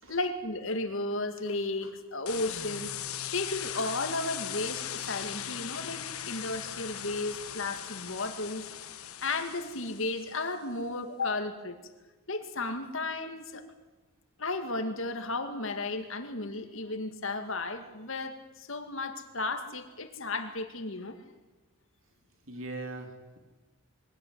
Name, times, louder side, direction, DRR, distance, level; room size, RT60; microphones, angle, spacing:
voice 1, 0.1-3.0 3.3-8.7 9.2-11.8 12.3-13.6 14.4-21.2, left 2 dB, 60° left, 7 dB, 2.2 m, -34 dB
sound 1, 2.3-10.5, left 10 dB, 75° left, 1.3 m, -39 dB
voice 2, 22.5-23.4, right 2 dB, 60° right, 4 dB, 3.6 m, -41 dB
23.5 x 17.0 x 9.5 m, 1.2 s
head